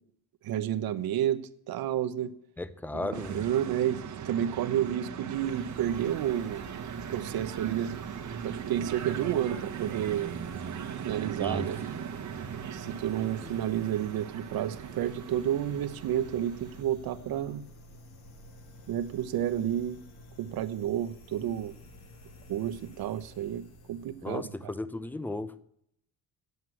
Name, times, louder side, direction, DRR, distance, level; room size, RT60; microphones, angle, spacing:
voice 1, 0.4-1.4 1.7-2.3 2.9-6.7 7.1-7.9 8.4-10.3 11.0-11.8 12.7-17.6 18.9-20.0 20.4-21.7 22.5-23.6 23.9-24.4, right 11 dB, 70° right, 1.0 m, -30 dB
voice 2, 2.6-3.4 11.4-11.7 13.4-13.6 24.2-25.6, left 2 dB, 5° left, 0.5 m, -35 dB
sound 1, 3.1-16.8, right 8 dB, 50° right, 1.4 m, -39 dB
sound 2, 5.3-24.5, left 1 dB, 80° left, 2.1 m, -51 dB
9.3 x 8.1 x 9.5 m
cardioid pair, 140°, 37 cm